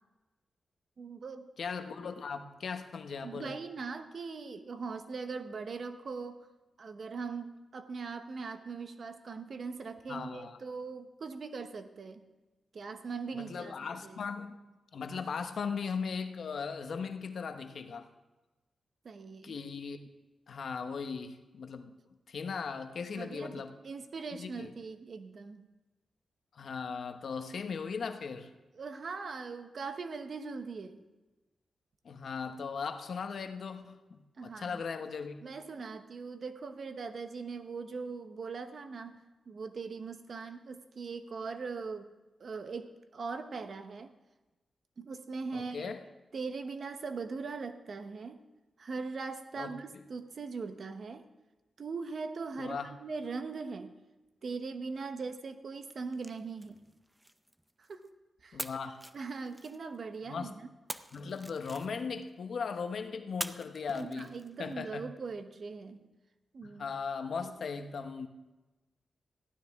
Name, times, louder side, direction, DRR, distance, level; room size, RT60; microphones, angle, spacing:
voice 1, 1.0-1.5 3.2-6.5 6.8-12.2 12.7-14.2 19.0-19.6 23.1-25.7 28.7-31.0 34.4-34.8 35.4-42.1 42.4-44.1 45.0-45.9 46.3-48.4 48.8-51.3 51.8-54.0 54.4-56.8 57.8-58.1 58.4-58.7 59.1-60.7 63.9-66.1 66.5-66.9, right 4 dB, 60° right, 9 dB, 0.9 m, -40 dB
voice 2, 1.6-3.5 10.1-10.6 13.3-14.6 14.9-18.1 19.4-20.0 20.5-21.9 22.3-23.7 24.4-24.7 26.5-28.5 32.0-35.4 45.5-46.0 49.6-49.8 52.6-52.9 58.5-59.0 60.3-60.5 61.1-64.3 64.6-65.1 66.6-68.3, left 5 dB, 75° left, 8 dB, 0.9 m, -38 dB
sound 1, 55.8-58.1 58.6-60.1 60.9-62.3 63.4-64.7, right 1 dB, 10° right, 0.6 m, -45 dB
15.5 x 12.0 x 3.5 m, 1.1 s
cardioid pair, 75°, 0 cm